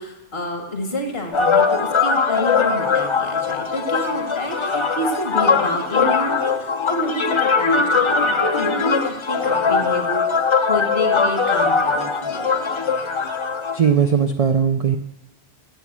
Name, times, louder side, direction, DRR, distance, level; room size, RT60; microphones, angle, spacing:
voice 1, 0.0-12.5, left 1 dB, 60° left, 4 dB, 1.7 m, -29 dB
sound 1, 1.3-13.8, left 5 dB, 35° left, 0.5 m, -20 dB
voice 2, 13.7-15.0, right 7 dB, 60° right, 8 dB, 0.4 m, -18 dB
9.1 x 7.2 x 7.3 m, 0.98 s
omnidirectional pair, 1.2 m